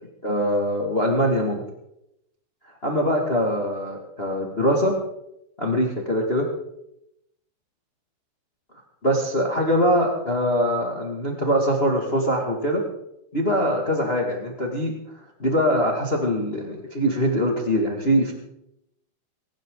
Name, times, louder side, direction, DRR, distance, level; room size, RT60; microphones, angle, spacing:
voice 1, 0.2-1.6 2.8-4.9 5.6-6.5 9.0-12.8 13.3-14.9 15.4-18.3, equal, 50° left, 1 dB, 0.7 m, -23 dB
25.0 x 11.5 x 3.9 m, 0.81 s
omnidirectional pair, 5.0 m